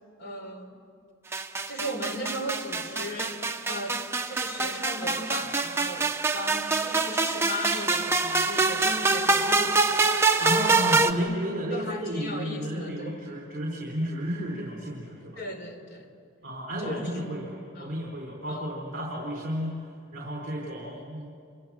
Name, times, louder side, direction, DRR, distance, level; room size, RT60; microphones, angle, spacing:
voice 1, 0.2-0.8 1.7-3.4 3.7-9.9 11.7-13.4 15.4-16.1 16.8-17.1 17.8-18.0 18.5-18.7, equal, 50° left, 5 dB, 3.9 m, -37 dB
sound 1, 1.3-11.1, right 3 dB, 15° right, 1.0 m, -25 dB
voice 2, 10.4-15.4 16.4-19.7 20.1-21.4, equal, 45° right, -1 dB, 4.3 m, -32 dB
28.5 x 27.0 x 7.7 m, 2.3 s
head